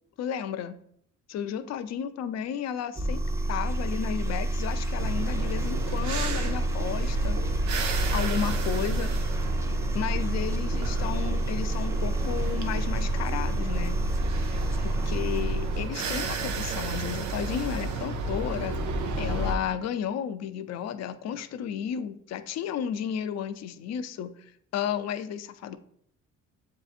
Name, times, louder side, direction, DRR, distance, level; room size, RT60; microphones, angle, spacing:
voice 1, 0.2-0.8 1.3-3.2 3.5-7.4 8.1-9.1 9.9-14.0 14.8-18.8 19.2-24.3 24.7-25.8, left 9 dB, 60° left, 11 dB, 0.4 m, -33 dB
sound 1, 2.9-15.9, right 1 dB, 10° right, 0.4 m, -29 dB
sound 2, 5.0-19.5, right 2 dB, 70° right, 0.6 m, -32 dB
7.4 x 2.7 x 2.4 m, 0.67 s
cardioid pair, 90°, 30 cm